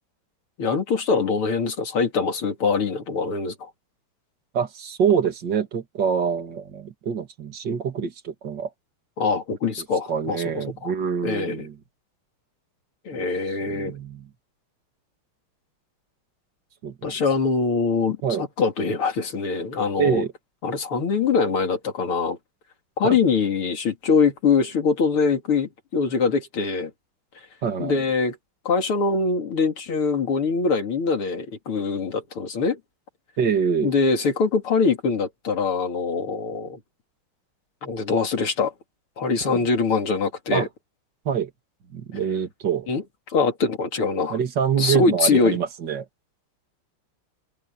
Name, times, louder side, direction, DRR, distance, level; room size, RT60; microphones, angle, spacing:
voice 1, 0.6-3.7 9.2-10.9 11.2-11.7 13.1-14.0 17.0-20.2 20.6-22.4 23.0-26.9 27.8-28.4 28.7-32.8 33.8-36.8 37.8-38.7 39.2-40.7 42.9-43.0 43.3-44.4 44.8-45.6, left 4 dB, 75° left, 3.6 m, -23 dB
voice 2, 4.5-8.7 10.1-11.7 13.1-13.2 13.7-14.3 16.8-17.2 18.2-18.4 20.0-20.3 23.0-23.2 27.6-28.0 33.4-33.9 39.4-39.6 40.5-40.7 41.2-41.5 41.9-42.9 44.3-46.1, right 7 dB, 55° right, 2.8 m, -25 dB
omnidirectional pair, 2.4 m